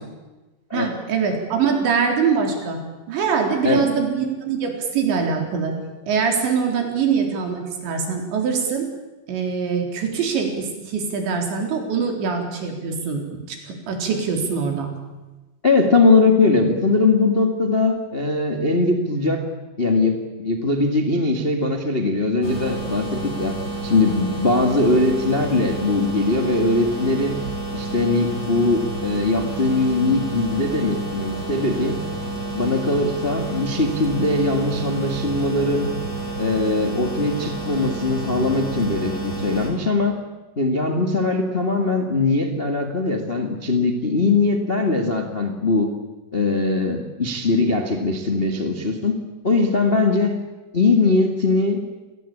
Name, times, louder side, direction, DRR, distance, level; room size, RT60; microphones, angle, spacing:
voice 1, 0.7-2.8 3.1-5.8 6.1-8.9 9.3-13.2 13.5-14.9, right 6 dB, 80° right, 3 dB, 6.2 m, -23 dB
voice 2, 15.6-19.4 19.8-23.5 23.8-27.4 27.7-32.0 32.5-35.9 36.4-40.2 40.5-45.9 46.3-49.1 49.4-50.4 50.7-51.8, left 3 dB, 40° left, 4 dB, 0.7 m, -20 dB
sound 1, 22.4-39.7, right 2 dB, 20° left, 4.9 m, -30 dB
28.5 x 19.5 x 8.7 m, 1.1 s
omnidirectional pair, 5.1 m